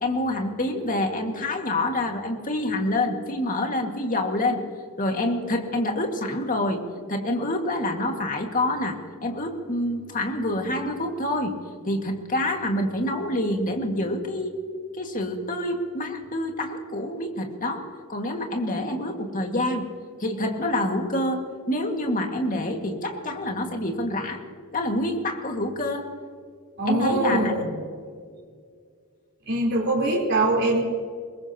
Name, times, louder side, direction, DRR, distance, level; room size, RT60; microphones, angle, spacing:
voice 1, 0.0-4.6 5.0-6.8 7.1-11.6 11.8-14.5 14.9-19.9 20.2-21.4 21.7-24.4 24.7-26.1 26.9-27.5, left 1 dB, 35° left, 3 dB, 2.0 m, -27 dB
voice 2, 26.8-27.7 29.5-30.8, right 2 dB, 50° right, -3 dB, 4.0 m, -23 dB
23.0 x 21.0 x 3.0 m, 2.1 s
head